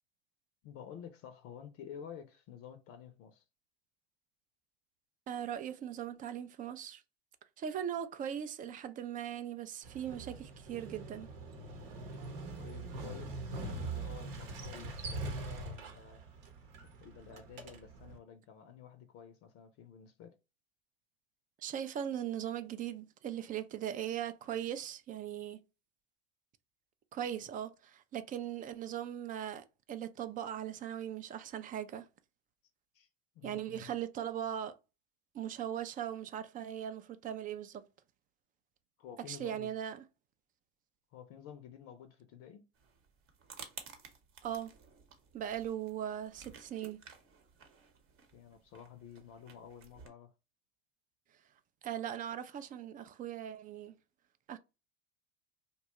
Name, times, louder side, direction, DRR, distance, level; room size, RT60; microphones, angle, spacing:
voice 1, 0.6-3.4 12.6-16.2 16.8-20.4 32.9-33.1 33.3-33.9 39.0-39.7 41.1-42.7 48.3-50.3, left 8 dB, 50° left, 0.5 m, -51 dB
voice 2, 5.3-7.0 7.6-11.3 21.6-25.6 27.1-32.1 33.4-34.8 35.3-37.8 39.3-40.0 44.4-44.7 45.3-47.0 51.8-54.0 54.5-54.6, right 10 dB, 30° right, 0.3 m, -39 dB
Motorcycle, 9.8-18.2, right 2 dB, 70° right, 0.9 m, -43 dB
sound 1, 42.7-50.1, right 6 dB, 45° right, 0.9 m, -54 dB
2.7 x 2.2 x 2.9 m
hypercardioid pair, 90°, 30 cm